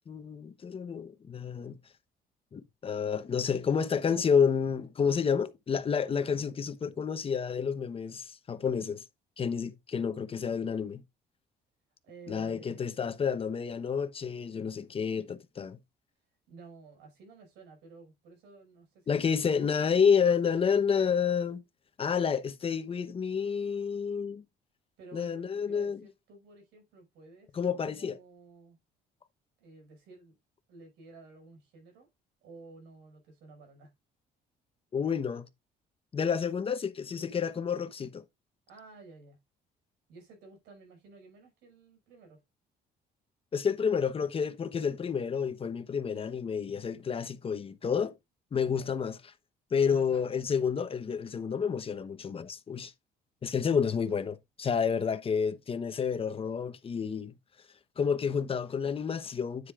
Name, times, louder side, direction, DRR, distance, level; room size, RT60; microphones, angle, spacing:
voice 1, 0.1-1.8 2.5-9.0 9.4-11.0 12.3-15.8 19.1-21.6 22.0-24.4 25.1-26.0 27.5-28.2 34.9-35.5 36.1-38.2 43.5-48.1 48.5-49.2 49.7-52.9 53.4-57.3 58.0-59.7, left 6 dB, 35° left, 1.0 m, -29 dB
voice 2, 12.0-12.9 16.5-19.1 19.4-19.7 25.0-27.6 27.8-28.8 29.6-30.4 30.7-32.1 32.4-33.9 38.7-39.4 40.1-42.4 48.7-48.9 49.9-50.3, right 3 dB, 85° right, 5.7 m, -53 dB
9.5 x 8.1 x 2.5 m
cardioid pair, 110°, 17 cm